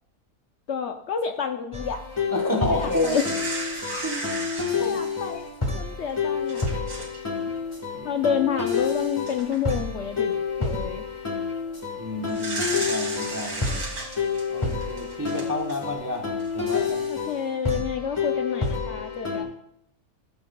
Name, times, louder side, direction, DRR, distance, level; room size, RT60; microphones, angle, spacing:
voice 1, 0.7-2.0 2.7-3.2 4.8-5.5 5.7-6.7 8.0-11.1 17.1-19.5, left 7 dB, 65° left, 6 dB, 0.8 m, -29 dB
sound 1, 1.7-19.4, left 5 dB, 20° left, 1.4 m, -29 dB
voice 2, 2.3-3.2 4.0-4.3 4.7-5.0 7.9-8.1 12.0-13.8 14.5-16.3 16.5-17.0 19.3-19.5, left 1 dB, 20° right, 1 dB, 0.5 m, -30 dB
sound 2, 2.8-5.5 6.1-6.2 6.5-7.2 7.5-7.7 8.8-8.9 9.3-9.8 10.5-10.8 12.3-15.9 16.4-16.5, right 2 dB, 85° right, 2.7 m, -35 dB
14.0 x 7.9 x 2.2 m, 0.72 s
omnidirectional pair, 1.5 m